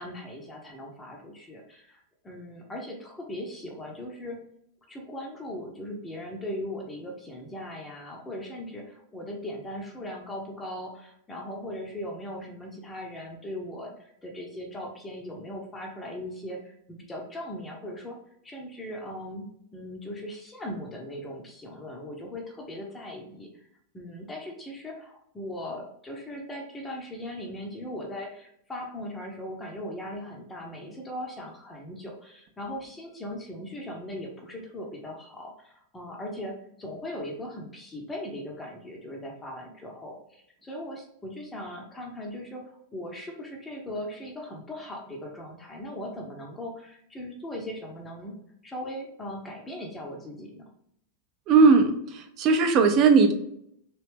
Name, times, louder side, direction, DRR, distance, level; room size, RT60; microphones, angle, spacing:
voice 1, 0.0-4.4 4.9-18.2 18.4-23.7 23.9-42.6 42.9-48.4 48.6-50.6, left 1 dB, 15° left, 0 dB, 0.7 m, -39 dB
voice 2, 51.5-53.3, right 4 dB, 35° right, 6 dB, 0.5 m, -18 dB
3.1 x 2.8 x 3.2 m, 0.73 s
figure-of-eight pair, 90°, 0 cm